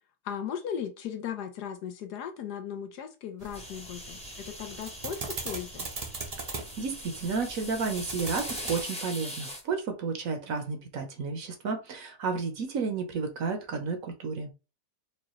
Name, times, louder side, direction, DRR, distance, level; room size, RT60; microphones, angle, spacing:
voice 1, 0.2-5.9, left 8 dB, 75° left, 1.3 m, -37 dB
sound 1, 3.4-8.8, right 3 dB, 40° right, 0.5 m, -40 dB
sound 2, 3.5-9.6, equal, 5° left, 0.7 m, -41 dB
voice 2, 6.5-14.5, right 4 dB, 60° right, 1.1 m, -32 dB
4.7 x 2.4 x 3.0 m
omnidirectional pair, 1.8 m